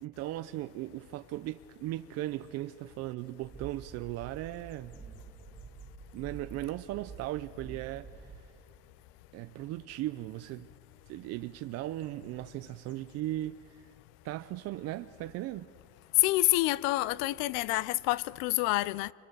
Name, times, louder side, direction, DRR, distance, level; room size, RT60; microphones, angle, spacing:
voice 1, 0.0-5.0 6.1-8.5 9.3-10.7 11.1-13.9 14.2-15.7, right 15 dB, 55° right, 0.5 m, -37 dB
sound 1, 3.4-8.4, right 5 dB, 10° right, 1.6 m, -48 dB
voice 2, 16.2-19.1, left 19 dB, 85° left, 0.6 m, -27 dB
25.5 x 23.5 x 6.7 m
cardioid pair, 145°, 31 cm